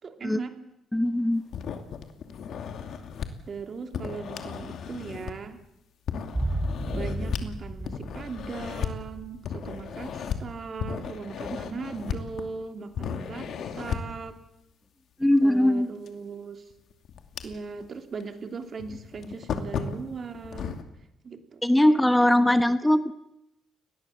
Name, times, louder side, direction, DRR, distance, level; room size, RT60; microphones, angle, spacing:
voice 1, 0.0-0.6 3.5-5.6 6.5-6.6 6.9-14.4 15.4-16.6 17.4-20.8 21.2-21.6 21.9-22.6, right 5 dB, 45° right, 6 dB, 3.1 m, -38 dB
voice 2, 0.9-1.4 15.2-15.9 21.6-23.1, left 1 dB, 5° left, 11 dB, 1.0 m, -21 dB
sound 1, 1.5-3.3 3.9-5.6 6.1-7.5 7.9-8.9 9.4-10.4 10.8-12.6 12.9-14.2 16.1-16.2 16.7-17.9 18.2-18.3 18.8-20.8, left 7 dB, 70° left, 2.6 m, -35 dB
sound 2, 6.3-10.6 10.8-10.9, right 1 dB, 10° right, 4.7 m, -34 dB
29.5 x 19.5 x 7.4 m, 0.85 s
cardioid pair, 90°, 0 cm